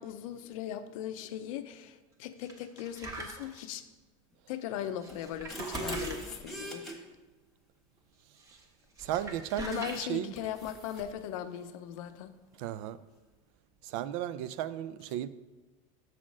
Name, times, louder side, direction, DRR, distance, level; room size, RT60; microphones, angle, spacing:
voice 1, 0.0-3.8 4.5-6.8 9.6-12.3, left 10 dB, 80° left, 0.6 m, -39 dB
sound 1, 2.4-3.6 5.0-6.2 8.4-8.6 9.0-10.0, right 2 dB, 20° right, 1.1 m, -43 dB
sound 2, 5.1-6.9 9.6-9.8 10.4-11.1, right 2 dB, ahead, 1.3 m, -40 dB
voice 2, 9.0-10.3 12.6-13.0 13.8-15.3, right 12 dB, 70° right, 0.5 m, -35 dB
7.5 x 4.1 x 6.1 m
supercardioid pair, 140°, 17 cm